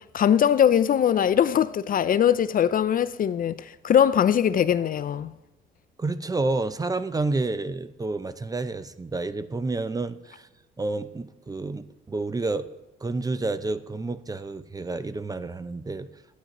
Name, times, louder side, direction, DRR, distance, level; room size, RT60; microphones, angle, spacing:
voice 1, 0.1-5.3, left 9 dB, 45° left, 0.4 m, -21 dB
voice 2, 6.0-10.5 10.8-12.7 13.0-16.1, right 3 dB, 20° right, 0.4 m, -29 dB
11.5 x 9.2 x 3.0 m
cardioid pair, 90°, 20 cm